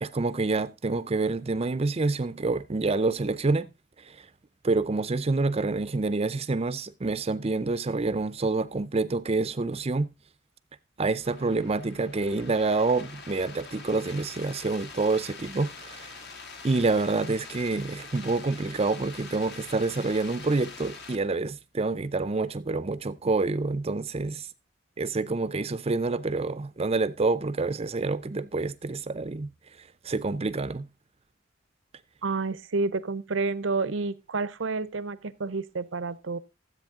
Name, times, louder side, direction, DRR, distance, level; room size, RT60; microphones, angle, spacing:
voice 1, 0.0-3.7 4.1-4.2 4.6-10.1 11.0-16.1 16.6-24.5 25.0-29.5 30.0-30.9, right 3 dB, 30° right, 0.5 m, -27 dB
sound 1, 11.2-21.2, left 4 dB, 60° left, 1.7 m, -44 dB
voice 2, 32.2-36.4, right 3 dB, 70° right, 0.7 m, -29 dB
13.5 x 7.9 x 3.7 m
head